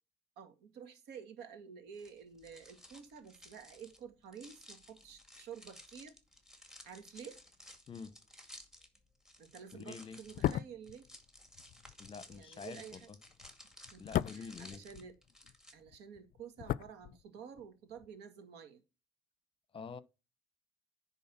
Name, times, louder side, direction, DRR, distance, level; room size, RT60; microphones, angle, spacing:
voice 1, 0.4-6.1 6.8-7.4 9.4-11.1 12.3-13.1 13.9-15.2 15.7-18.8, right 7 dB, 90° right, 1.9 m, -51 dB
sound 1, 1.9-15.7, left 1 dB, 5° right, 2.1 m, -56 dB
voice 2, 9.7-10.2 12.0-13.2 14.0-14.8 19.7-20.0, left 5 dB, 30° left, 0.9 m, -47 dB
sound 2, 10.2-15.6 15.8-17.7 17.9-18.1, left 13 dB, 55° left, 0.4 m, -38 dB
10.0 x 4.1 x 6.0 m
cardioid pair, 110°, 17 cm